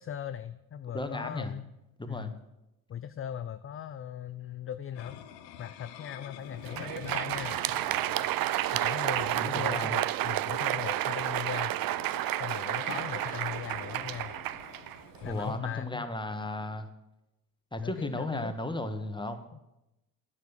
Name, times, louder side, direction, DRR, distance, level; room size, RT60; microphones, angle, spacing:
voice 1, 0.0-1.7 2.1-2.3 2.9-5.2 5.6-7.6 8.7-11.7 12.4-14.4 15.2-16.1 17.8-18.5 19.5-19.6, left 9 dB, 30° left, 12 dB, 0.5 m, -39 dB
voice 2, 0.9-1.5 2.0-2.4 9.3-10.0 15.2-16.9 17.7-19.4, left 1 dB, 10° left, 8 dB, 1.4 m, -35 dB
sound 1, 4.9-15.6, left 10 dB, 85° left, 0.8 m, -49 dB
Crowd, 6.5-15.5, right 14 dB, 45° right, 0.5 m, -31 dB
9.4 x 6.9 x 7.2 m, 0.91 s
hypercardioid pair, 50°, 48 cm